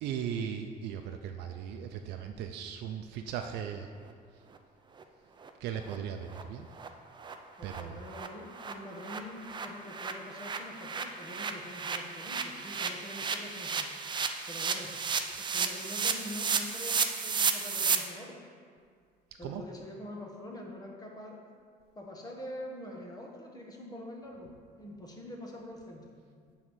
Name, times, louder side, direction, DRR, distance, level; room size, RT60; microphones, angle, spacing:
voice 1, 0.0-3.9 5.6-6.7 7.6-8.0 19.4-19.6, right 8 dB, 80° right, 5 dB, 0.5 m, -37 dB
sound 1, 5.0-5.1 5.4-5.5 5.9-6.0 6.3-6.4 6.8-6.9 7.2-7.3 7.7-7.8 8.1-18.0, right 5 dB, 25° right, 0.5 m, -33 dB
voice 2, 7.6-13.9 14.5-14.9 15.5-18.4 19.4-21.4 21.9-24.5 24.8-26.2, left 1 dB, 20° left, 0 dB, 1.2 m, -45 dB
7.2 x 3.8 x 6.2 m, 2.1 s
cardioid pair, 110°, 17 cm